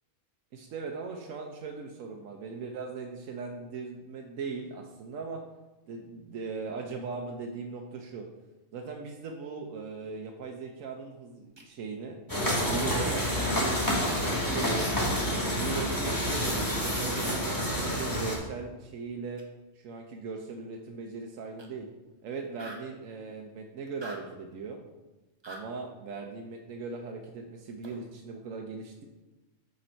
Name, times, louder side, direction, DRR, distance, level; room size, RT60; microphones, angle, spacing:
voice 1, 0.5-5.4 5.9-8.3 8.7-12.2 12.7-14.9 15.3-19.4 19.7-21.9 22.2-24.8 25.5-29.0, right 4 dB, 85° right, 1 dB, 1.1 m, -39 dB
sound 1, 11.6-11.7 12.7-12.8 13.8-13.9 14.8-14.9 16.0-16.1 17.1-17.2 18.3-18.4 19.4-19.5 21.6-21.7 22.0-22.1 22.4-22.9 23.9-24.3 25.4-25.7 27.8-28.1, right 1 dB, 25° right, 0.8 m, -46 dB
sound 2, 12.3-18.4, equal, 15° left, 1.3 m, -28 dB
6.4 x 5.3 x 4.4 m, 1.1 s
omnidirectional pair, 1.3 m